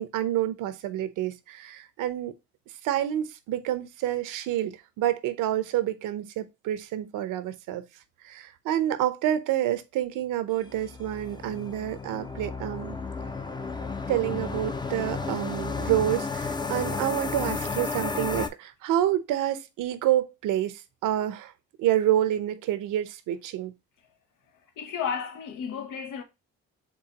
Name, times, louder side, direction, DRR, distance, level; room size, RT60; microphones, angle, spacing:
voice 1, 0.0-2.3 2.8-7.8 8.2-13.0 14.1-21.5 21.8-23.7, right 12 dB, 85° right, 0.7 m, -28 dB
sound 1, 10.6-18.5, left 4 dB, 15° left, 0.4 m, -33 dB
voice 2, 24.8-26.2, left 7 dB, 80° left, 0.8 m, -33 dB
4.6 x 3.3 x 2.8 m
cardioid pair, 80°, 31 cm